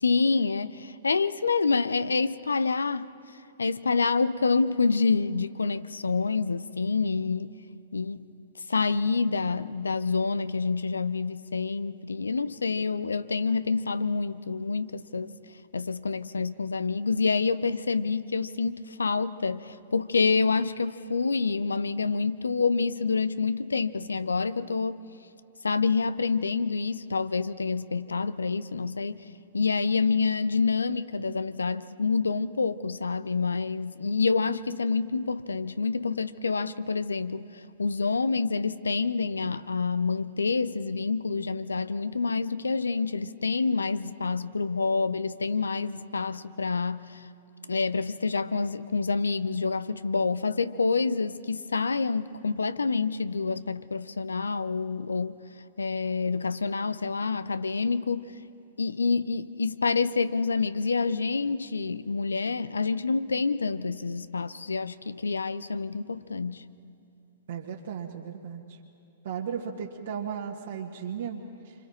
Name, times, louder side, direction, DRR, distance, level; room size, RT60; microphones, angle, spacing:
voice 1, 0.0-3.1 3.6-7.5 7.9-8.2 8.7-15.3 15.7-25.0 25.6-29.2 29.5-47.2 47.7-55.4 55.8-58.3 58.8-66.6, left 4 dB, 85° left, 0.7 m, -27 dB
voice 2, 67.5-68.6 69.2-71.7, right 7 dB, 65° right, 1.8 m, -35 dB
27.0 x 26.0 x 4.4 m
figure-of-eight pair, 110°, 0 cm